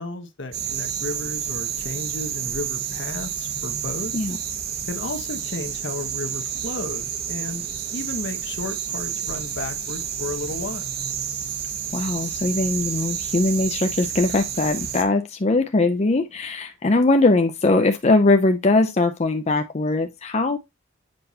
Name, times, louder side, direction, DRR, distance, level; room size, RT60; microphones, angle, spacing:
voice 1, 0.0-4.1 4.9-7.7 7.9-10.8, left 2 dB, 65° left, 1.1 m, -33 dB
sound 1, 0.5-15.0, right 8 dB, 55° right, 1.0 m, -30 dB
voice 2, 11.9-20.6, left 2 dB, 35° left, 0.5 m, -21 dB
7.9 x 5.3 x 2.8 m
head